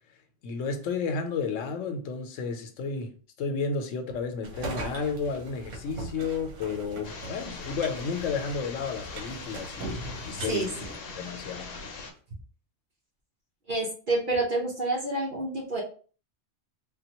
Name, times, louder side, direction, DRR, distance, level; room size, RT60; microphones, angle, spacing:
voice 1, 0.4-3.1 3.4-10.9 11.2-11.7, left 5 dB, 90° left, 1.0 m, -32 dB
sound 1, 4.4-11.6, right 1 dB, 75° right, 1.1 m, -40 dB
sound 2, 7.0-12.1, left 4 dB, 60° left, 0.8 m, -41 dB
voice 2, 10.4-10.9 13.7-15.8, right 2 dB, 45° right, 0.9 m, -28 dB
3.7 x 2.2 x 2.8 m
omnidirectional pair, 1.3 m